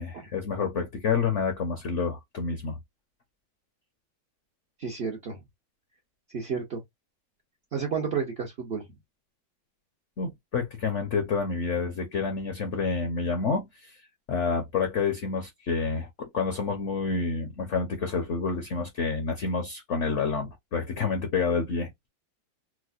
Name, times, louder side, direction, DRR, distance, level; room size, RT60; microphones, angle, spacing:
voice 1, 0.0-2.8 10.2-14.0 14.3-21.9, left 5 dB, 65° left, 0.7 m, -28 dB
voice 2, 4.8-5.4 6.3-6.8 7.7-8.9, right 6 dB, 70° right, 0.5 m, -31 dB
4.6 x 2.0 x 2.4 m
omnidirectional pair, 2.2 m